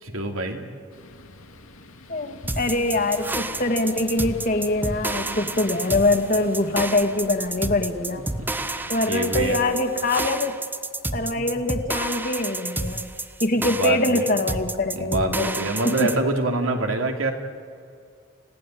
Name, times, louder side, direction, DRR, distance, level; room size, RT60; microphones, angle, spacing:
voice 1, 0.0-0.6 8.4-9.6 11.4-11.5 13.5-14.2 14.9-17.3, right 2 dB, 80° right, 3 dB, 2.9 m, -26 dB
sound 1, 0.9-9.6, left 2 dB, 90° left, 2.3 m, -44 dB
voice 2, 2.1-8.2 8.9-10.6 11.1-13.1 13.4-15.6 15.9-16.1, left 2 dB, 40° left, 6 dB, 1.9 m, -24 dB
sound 2, 2.5-16.2, right 2 dB, 10° right, 0.7 m, -30 dB
29.5 x 17.0 x 9.2 m, 2.3 s
head